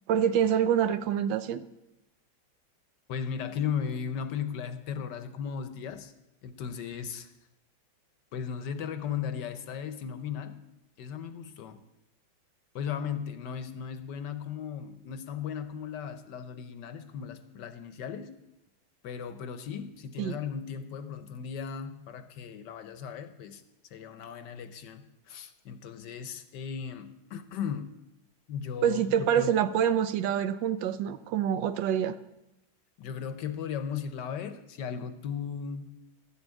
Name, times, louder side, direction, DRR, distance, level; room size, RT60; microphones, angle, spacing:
voice 1, 0.1-1.6 20.2-20.3 28.8-32.1, right 9 dB, 75° right, 12 dB, 1.2 m, -26 dB
voice 2, 3.1-6.1 6.4-7.3 8.3-10.6 11.0-11.8 12.7-18.3 19.0-23.6 23.9-27.9 28.5-29.5 33.0-35.9, left 7 dB, 65° left, 10 dB, 1.3 m, -36 dB
12.5 x 7.1 x 8.1 m, 0.91 s
omnidirectional pair, 2.2 m